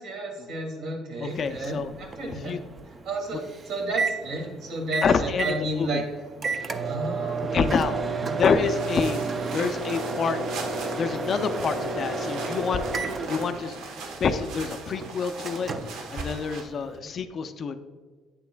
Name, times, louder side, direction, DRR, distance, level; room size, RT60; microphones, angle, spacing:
voice 1, 0.0-2.6 3.0-6.0 6.8-7.8 8.1-8.5 16.7-16.9, right 2 dB, 65° right, 1 dB, 2.0 m, -32 dB
voice 2, 1.2-1.9 2.2-2.6 3.3-3.4 5.0-5.9 7.5-7.9 8.4-9.2 9.5-10.4 11.0-12.8 13.3-13.8 14.2-15.7 16.1-17.8, left 6 dB, 35° left, 9 dB, 0.4 m, -27 dB
Microwave oven, 1.3-17.0, right 3 dB, 25° right, 0.4 m, -32 dB
sound 1, 8.6-16.6, right 4 dB, 85° right, 1.1 m, -40 dB
8.7 x 7.1 x 2.2 m, 1.5 s
cardioid pair, 165°, 0 cm